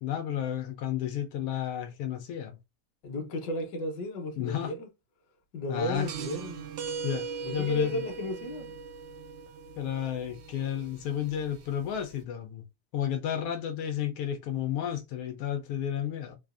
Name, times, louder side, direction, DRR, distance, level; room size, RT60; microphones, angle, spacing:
voice 1, 0.0-2.6 4.4-4.7 5.7-6.1 7.0-7.2 7.5-8.0 9.8-12.6 12.9-16.4, left 10 dB, 80° left, 1.5 m, -32 dB
voice 2, 3.0-4.9 5.5-6.7 7.4-8.7, left 1 dB, 60° left, 1.3 m, -34 dB
sound 1, 5.9-12.2, right 6 dB, 90° right, 1.6 m, -40 dB
4.0 x 2.5 x 2.4 m
omnidirectional pair, 2.4 m